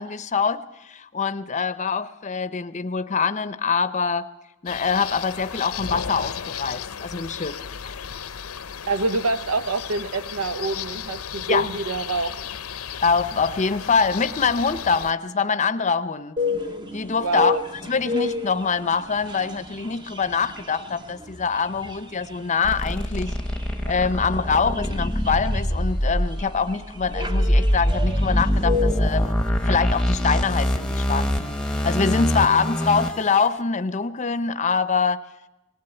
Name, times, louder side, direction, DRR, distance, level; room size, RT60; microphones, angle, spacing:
voice 1, 0.0-4.3 4.6-8.0 11.5-11.7 13.0-16.4 16.9-17.6 17.9-23.3 23.9-29.4 29.7-35.2, left 5 dB, 35° left, 13 dB, 0.7 m, -24 dB
sound 1, 4.7-15.1, left 7 dB, 90° left, 0.7 m, -34 dB
voice 2, 8.9-12.3 17.2-17.6, right 3 dB, 90° right, 13 dB, 0.7 m, -26 dB
sound 2, 16.4-29.2, left 4 dB, 20° right, 0.9 m, -33 dB
sound 3, 22.6-33.5, equal, 5° left, 1.0 m, -24 dB
18.5 x 18.0 x 8.0 m, 0.97 s
head